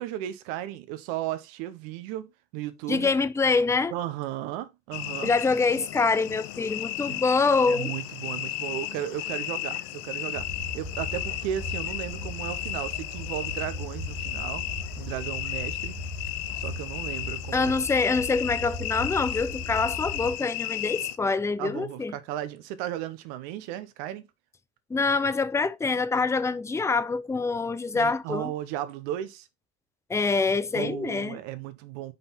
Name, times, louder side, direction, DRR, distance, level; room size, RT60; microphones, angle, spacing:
voice 1, 0.0-3.1 3.9-5.3 7.1-7.2 7.7-10.5 10.7-14.6 15.0-15.9 16.5-17.7 21.6-24.3 27.9-29.5 30.7-32.1, right 12 dB, 65° right, 1.0 m, -35 dB
voice 2, 2.9-3.9 5.2-7.9 17.5-22.1 24.9-28.5 30.1-31.4, left 4 dB, 10° left, 0.5 m, -25 dB
sound 1, 4.9-21.2, left 14 dB, 65° left, 0.7 m, -34 dB
sound 2, 10.4-20.3, left 1 dB, 15° right, 1.6 m, -38 dB
5.4 x 5.3 x 4.2 m
hypercardioid pair, 70°, 33 cm